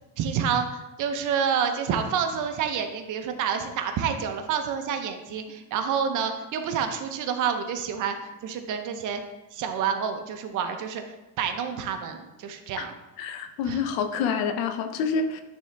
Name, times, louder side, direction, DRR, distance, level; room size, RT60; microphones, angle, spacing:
voice 1, 0.2-9.2 9.5-11.0 11.4-12.9 13.6-13.8, right 7 dB, 55° right, 6 dB, 0.9 m, -28 dB
voice 2, 13.2-15.4, left 6 dB, 85° left, 7 dB, 0.8 m, -27 dB
9.9 x 3.7 x 3.4 m, 1.0 s
cardioid pair, 135°, 36 cm